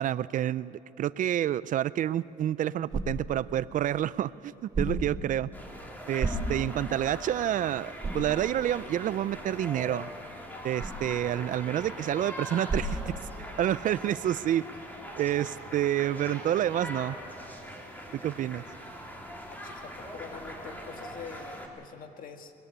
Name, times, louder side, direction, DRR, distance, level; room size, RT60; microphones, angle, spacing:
voice 1, 0.0-5.5 6.1-10.1 10.6-13.1 13.6-14.7 15.2-17.2 18.1-18.6, right 11 dB, 50° right, 18 dB, 0.4 m, -29 dB
sound 1, 2.0-13.8, right 2 dB, 25° right, 6.4 m, -38 dB
sound 2, 5.5-21.7, equal, 10° left, 3.2 m, -42 dB
voice 2, 19.6-22.5, left 6 dB, 55° left, 6 dB, 1.8 m, -45 dB
21.0 x 15.0 x 9.9 m, 2.7 s
cardioid pair, 110°, 17 cm